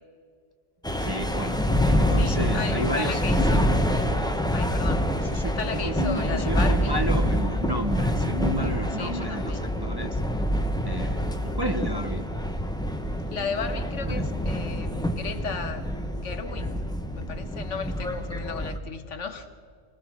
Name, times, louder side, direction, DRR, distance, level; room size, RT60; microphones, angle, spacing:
sound 1, 0.8-18.8, equal, 5° left, 1.2 m, -26 dB
voice 1, 0.9-1.6 1.8-3.6 5.2-10.2 10.8-12.3 14.0-14.2, equal, 20° right, 5 dB, 1.0 m, -32 dB
voice 2, 2.2-3.9 4.5-5.1 5.6-7.0 9.0-9.7 13.3-16.9 17.1-19.6, left 5 dB, 65° left, 9 dB, 1.6 m, -35 dB
25.5 x 19.5 x 6.2 m, 2.2 s
omnidirectional pair, 1.3 m